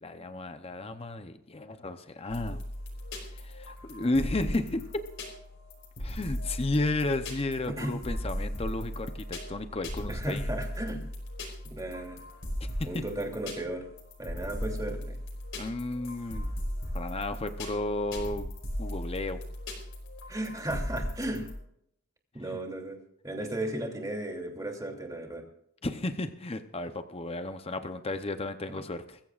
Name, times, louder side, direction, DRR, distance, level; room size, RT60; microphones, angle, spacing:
voice 1, 0.0-2.6 3.3-4.9 6.0-10.4 12.8-13.0 15.6-16.5 16.9-18.5 18.8-19.4 22.4-22.6 25.8-29.2, left 2 dB, 25° left, 8 dB, 0.7 m, -33 dB
sound 1, 2.3-21.5, equal, 60° left, 5.4 m, -37 dB
voice 2, 7.7-8.0 10.1-11.0 11.6-12.2 12.8-13.9 14.2-15.2 20.3-21.5 22.3-23.0 23.2-25.5, right 1 dB, 15° right, 2 dB, 2.8 m, -35 dB
23.0 x 15.0 x 2.5 m, 0.73 s
head